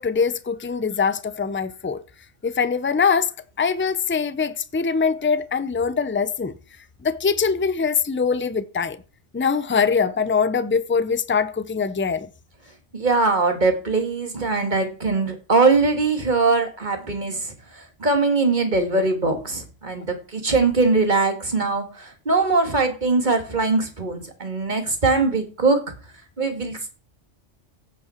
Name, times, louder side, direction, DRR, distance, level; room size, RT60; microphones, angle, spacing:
voice 1, 0.0-2.0 2.4-3.3 3.6-6.5 7.0-9.0 9.3-12.3, left 5 dB, 15° left, 0.5 m, -22 dB
voice 2, 12.9-25.8 26.4-26.9, right 3 dB, 40° right, 2.3 m, -21 dB
15.5 x 9.2 x 4.5 m
omnidirectional pair, 1.2 m